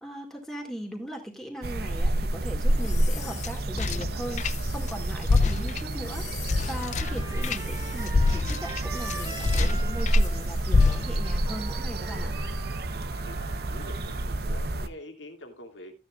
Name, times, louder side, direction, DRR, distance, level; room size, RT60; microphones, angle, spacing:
voice 1, 0.0-6.3 6.7-12.3, equal, ahead, 1 dB, 2.0 m, -39 dB
sound 1, 1.6-14.9, right 1 dB, 55° right, 0.8 m, -29 dB
sound 2, 2.6-4.9 5.2-10.3 10.7-11.4, left 4 dB, 40° left, 0.4 m, -27 dB
Trumpet, 6.6-14.3, right 3 dB, 20° right, 1.3 m, -43 dB
voice 2, 13.2-15.9, left 1 dB, 80° left, 6 dB, 2.2 m, -45 dB
13.5 x 9.6 x 2.4 m, 0.29 s
head